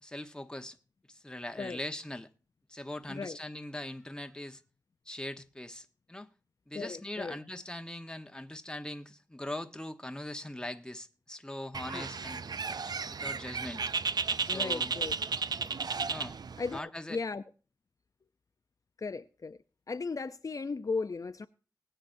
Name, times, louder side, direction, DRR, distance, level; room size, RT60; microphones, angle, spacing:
voice 1, 0.0-0.8 1.1-2.3 2.7-4.6 5.1-6.3 6.7-12.4 13.1-13.8 14.4-14.9 16.1-16.4 16.7-17.2, left 1 dB, 10° left, 1.1 m, -41 dB
voice 2, 6.7-7.4 11.9-12.0 14.5-15.1 16.6-17.4 19.0-19.6 19.9-21.5, left 4 dB, 55° left, 0.5 m, -36 dB
Bird, 11.7-16.8, right 5 dB, 75° right, 0.5 m, -34 dB
20.0 x 9.0 x 2.6 m
wide cardioid pair, 75°, 7 cm